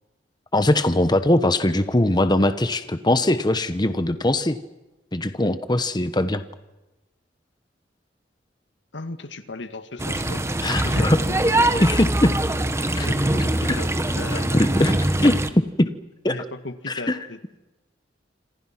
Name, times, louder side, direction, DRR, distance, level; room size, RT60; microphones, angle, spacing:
voice 1, 0.5-4.6 5.1-6.4 10.6-11.2 11.8-12.3 13.0-13.1 13.7-13.8 14.5-14.9 15.2-15.4 15.8-15.9 16.2-16.4 16.9-17.2, left 1 dB, 25° left, 11 dB, 1.1 m, -20 dB
voice 2, 8.9-11.1 11.6-11.9 12.9-13.9 14.2-14.6 16.3-17.6, left 2 dB, 80° left, 10 dB, 1.9 m, -36 dB
sound 1, 10.0-15.5, right 1 dB, 15° right, 1.5 m, -23 dB
27.5 x 27.0 x 6.0 m, 1.0 s
head